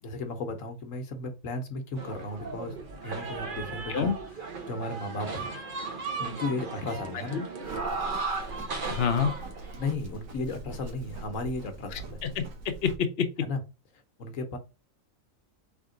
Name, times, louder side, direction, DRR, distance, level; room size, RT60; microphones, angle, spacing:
voice 1, 0.0-2.8 3.0-4.1 4.7-5.5 6.2-7.4 9.8-12.2 13.4-13.6 14.2-14.6, left 2 dB, 75° left, 1.3 m, -34 dB
sound 1, 2.0-9.9, right 4 dB, 45° right, 0.9 m, -36 dB
Livestock farm animals working animals, 7.6-13.0, right 2 dB, 85° right, 1.3 m, -42 dB
voice 2, 8.9-9.3 11.9-12.9 13.2-13.3, left 7 dB, 55° left, 0.8 m, -27 dB
3.7 x 3.6 x 3.8 m
omnidirectional pair, 1.4 m